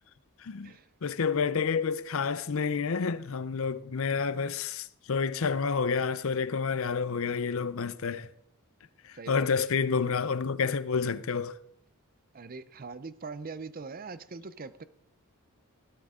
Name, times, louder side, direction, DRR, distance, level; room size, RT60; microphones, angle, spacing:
voice 1, 0.4-0.7 1.0-8.3 9.0-11.6, left 5 dB, 65° left, 0.6 m, -29 dB
voice 2, 9.1-9.5 12.3-14.8, right 4 dB, 40° right, 0.6 m, -42 dB
16.5 x 12.5 x 3.7 m
head